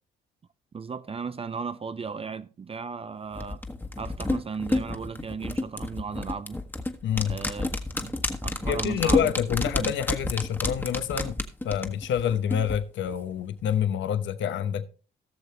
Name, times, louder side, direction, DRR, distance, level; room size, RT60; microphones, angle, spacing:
voice 1, 0.7-3.6 4.0-6.6 7.3-9.3 9.7-10.0, right 5 dB, 30° right, 0.5 m, -36 dB
sound 1, 3.4-12.8 13.1-13.2, left 2 dB, 10° left, 1.3 m, -30 dB
voice 2, 7.0-7.4 8.7-11.4 11.6-14.9, left 9 dB, 70° left, 0.9 m, -27 dB
17.5 x 6.7 x 3.2 m
cardioid pair, 90°, 20 cm